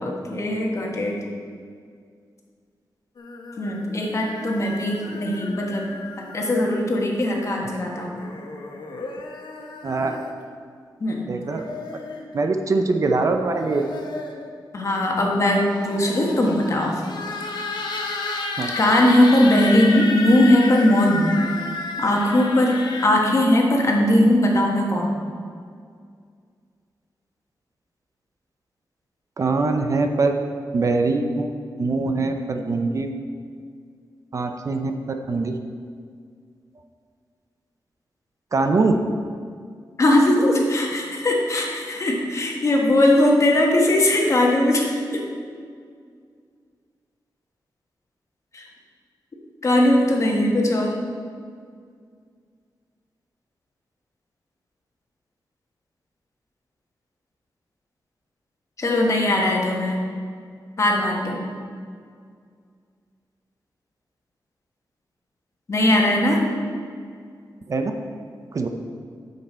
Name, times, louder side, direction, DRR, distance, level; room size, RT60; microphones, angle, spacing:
voice 1, 0.0-1.2 3.6-5.8 6.2-8.2 11.0-11.3 14.7-16.9 18.7-21.4 22.0-25.2 40.0-45.2 48.5-48.6 49.6-51.0 58.8-60.0 60.8-61.4 65.7-66.4, left 1 dB, 40° left, 0 dB, 1.3 m, -19 dB
sound 1, 3.2-6.9 8.1-10.4 11.2-12.2 13.3-14.5 15.5-23.1, left 3 dB, 70° left, 1.0 m, -33 dB
voice 2, 9.8-10.3 11.3-11.7 12.3-13.8 18.6-18.7 29.4-30.3 30.7-33.1 34.3-34.9 35.3-35.6 38.5-39.0 67.7-67.9 68.5-68.7, right 3 dB, 45° right, 5 dB, 0.6 m, -22 dB
9.5 x 6.7 x 4.3 m, 2.1 s
wide cardioid pair, 160°, 8 cm